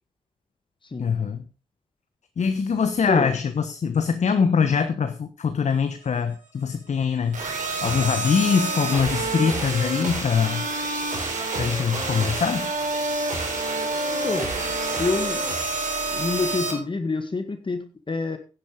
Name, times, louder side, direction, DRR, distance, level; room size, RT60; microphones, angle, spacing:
voice 1, 1.0-1.5 2.4-10.6 11.6-12.7, left 6 dB, 60° left, 9 dB, 1.2 m, -23 dB
voice 2, 3.1-3.4 14.2-14.5 15.0-15.4 16.1-18.4, left 3 dB, 40° left, 8 dB, 1.9 m, -27 dB
sound 1, 7.3-16.7, right 2 dB, 75° right, 4.4 m, -27 dB
10.5 x 9.6 x 5.1 m, 0.35 s
supercardioid pair, 50°, 13 cm